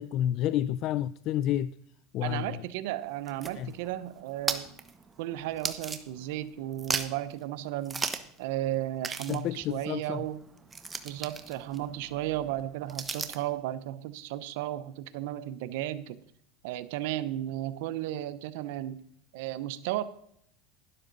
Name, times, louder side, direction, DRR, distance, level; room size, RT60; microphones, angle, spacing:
voice 1, 0.0-1.7 2.1-2.6 3.6-3.7 9.3-10.2, left 12 dB, 50° left, 0.3 m, -30 dB
voice 2, 2.2-4.7 5.2-8.1 8.4-10.4 11.0-16.2 16.6-19.0 19.3-20.0, right 13 dB, 75° right, 0.8 m, -34 dB
sound 1, 3.0-6.5 6.7-7.3 7.9-8.4 8.7-8.8 9.0-13.5, right 4 dB, 15° right, 1.0 m, -37 dB
12.0 x 11.5 x 4.0 m
supercardioid pair, 135°, 0 cm